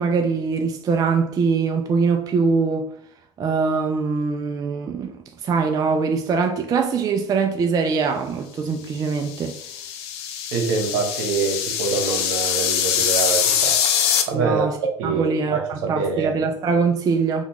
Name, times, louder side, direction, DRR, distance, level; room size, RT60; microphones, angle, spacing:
voice 1, 0.0-2.9 3.4-9.6 14.3-14.8 15.0-17.4, right 5 dB, 30° right, 0.3 m, -22 dB
sound 1, 9.1-14.2, left 9 dB, 75° left, 0.5 m, -23 dB
voice 2, 10.5-16.4, right 4 dB, 70° right, 1.0 m, -25 dB
3.6 x 2.3 x 2.9 m
supercardioid pair, 95°, 14 cm